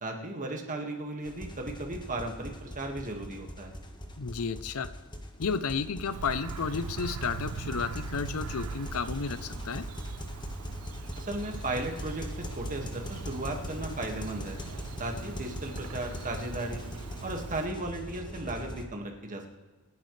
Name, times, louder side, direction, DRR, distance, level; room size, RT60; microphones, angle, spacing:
voice 1, 0.0-3.7 11.2-12.3 12.5-14.6 15.0-16.8 17.2-19.4, right 2 dB, 35° right, 2 dB, 1.9 m, -35 dB
sound 1, 1.2-18.8, equal, 20° left, 1.2 m, -40 dB
voice 2, 4.2-4.9 5.4-9.8, left 5 dB, 75° left, 14 dB, 0.6 m, -32 dB
Bird vocalization bird call bird song, 6.1-17.7, right 7 dB, 85° right, 0.4 m, -42 dB
27.0 x 10.5 x 3.3 m, 1.3 s
head